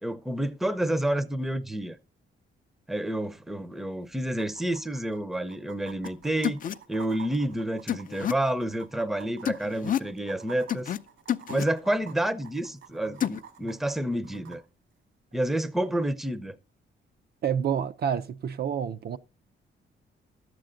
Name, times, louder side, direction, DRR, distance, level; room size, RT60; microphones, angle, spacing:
voice 1, 0.0-2.0 2.9-6.6 6.9-10.9 11.5-14.6 15.3-16.5, right 1 dB, ahead, 0.6 m, -29 dB
sound 1, 3.2-3.3 3.6-3.7 4.3-14.6 16.3-16.4, right 9 dB, 85° right, 2.1 m, -49 dB
sound 2, 6.0-6.1 6.4-6.7 7.9-8.3 9.4-10.1 10.7-11.0 11.3-11.7 13.2-13.4, left 10 dB, 45° left, 0.4 m, -29 dB
voice 2, 17.4-19.2, right 8 dB, 55° right, 0.5 m, -28 dB
11.5 x 7.7 x 3.8 m
cardioid pair, 120°, 20 cm